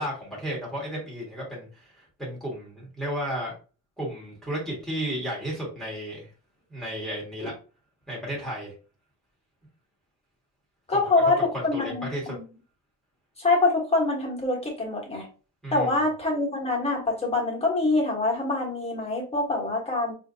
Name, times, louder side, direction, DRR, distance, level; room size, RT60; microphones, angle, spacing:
voice 1, 0.0-3.5 4.0-6.3 6.7-7.5 8.1-8.7 10.9-11.0 11.5-12.4 15.6-16.0, equal, ahead, -5 dB, 1.4 m, -33 dB
voice 2, 10.9-12.4 13.4-15.3 15.7-20.1, left 2 dB, 15° left, -1 dB, 1.4 m, -25 dB
4.2 x 2.7 x 2.7 m, 0.36 s
cardioid pair, 125°, 34 cm